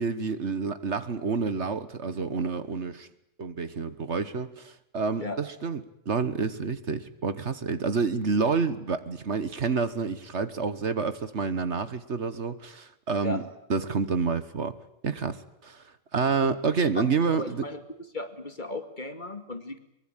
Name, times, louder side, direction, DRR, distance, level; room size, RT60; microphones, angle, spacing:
voice 1, 0.0-3.1 3.4-13.4 13.7-14.7 15.0-15.8 16.1-17.6, right 5 dB, 60° right, 13 dB, 1.6 m, -28 dB
voice 2, 17.3-17.8 18.1-19.8, left 2 dB, 35° left, 8 dB, 2.4 m, -35 dB
24.0 x 22.0 x 9.1 m, 0.80 s
omnidirectional pair, 1.3 m